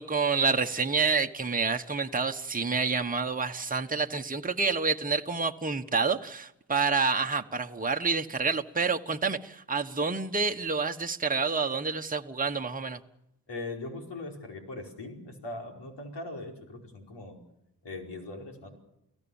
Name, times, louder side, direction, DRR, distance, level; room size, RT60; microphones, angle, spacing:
voice 1, 0.0-13.0, right 4 dB, 20° right, 5 dB, 1.3 m, -28 dB
voice 2, 13.5-17.4 17.8-18.7, left 2 dB, 85° left, 2 dB, 5.1 m, -40 dB
30.0 x 17.5 x 7.2 m, 0.83 s
wide cardioid pair, 90°, 41 cm